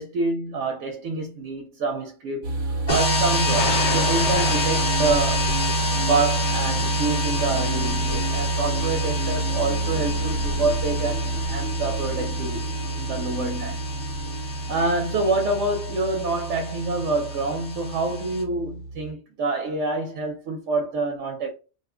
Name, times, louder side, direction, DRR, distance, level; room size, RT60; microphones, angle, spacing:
voice 1, 0.0-5.5 6.0-13.8 14.7-21.5, right 3 dB, 90° right, 0.9 m, -27 dB
sound 1, 2.4-19.1, right 2 dB, 55° right, 0.9 m, -28 dB
sound 2, 2.9-18.4, left 1 dB, 45° left, 1.2 m, -29 dB
sound 3, 3.6-12.4 13.1-13.5 14.1-14.2, left 5 dB, 75° left, 1.0 m, -35 dB
2.6 x 2.4 x 3.6 m
omnidirectional pair, 1.2 m